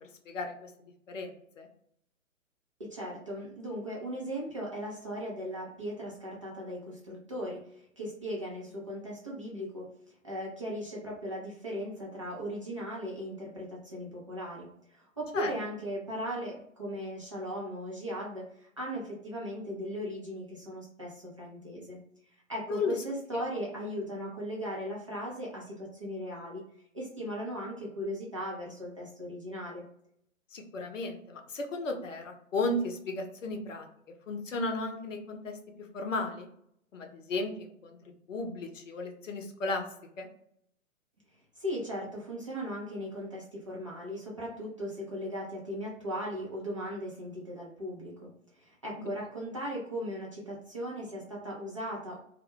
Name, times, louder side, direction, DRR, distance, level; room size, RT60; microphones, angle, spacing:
voice 1, 0.0-0.7 1.1-1.3 1.6-1.7 15.3-15.5 22.7-23.0 23.3-23.4 30.5-33.9 34.3-35.6 35.9-36.5 36.9-38.0 38.3-39.8 40.2-40.3 49.0-49.1, left 2 dB, 65° left, 4 dB, 0.7 m, -34 dB
voice 2, 2.8-22.0 22.5-26.6 26.9-29.8 41.6-48.3 48.6-52.2, equal, 25° right, -5 dB, 0.3 m, -38 dB
2.2 x 2.0 x 3.0 m, 0.71 s
figure-of-eight pair, 120°, 41 cm